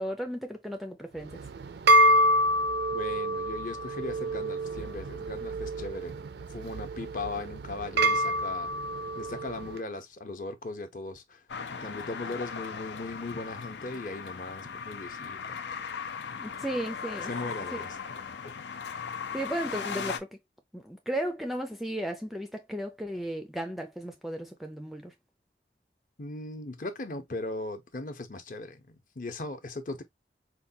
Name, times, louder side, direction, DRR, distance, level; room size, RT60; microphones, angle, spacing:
voice 1, 0.0-1.4 16.4-17.3 17.7-17.8 19.3-20.3 20.7-25.1, right 1 dB, ahead, 0.4 m, -35 dB
sound 1, 1.2-9.7, equal, 70° right, 0.4 m, -27 dB
voice 2, 2.9-6.2 6.5-8.8 9.1-11.5 11.7-15.6 17.2-18.5 26.2-30.0, left 2 dB, 45° left, 0.7 m, -38 dB
sound 2, 11.5-20.2, left 6 dB, 80° left, 0.5 m, -38 dB
4.5 x 2.2 x 2.6 m
head